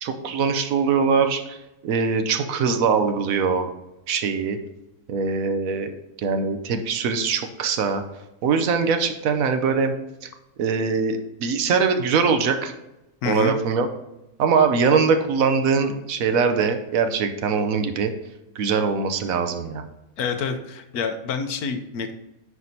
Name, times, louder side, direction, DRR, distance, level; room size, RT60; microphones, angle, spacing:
voice 1, 0.0-1.6 1.8-3.7 4.1-4.6 5.1-5.9 6.2-8.0 8.4-9.9 10.6-12.7 13.2-13.9 14.4-18.1 18.6-19.8, right 5 dB, 75° right, 8 dB, 1.1 m, -22 dB
voice 2, 13.2-13.6 20.2-22.1, left 5 dB, 90° left, 7 dB, 1.2 m, -27 dB
9.5 x 4.8 x 2.8 m, 0.92 s
omnidirectional pair, 1.5 m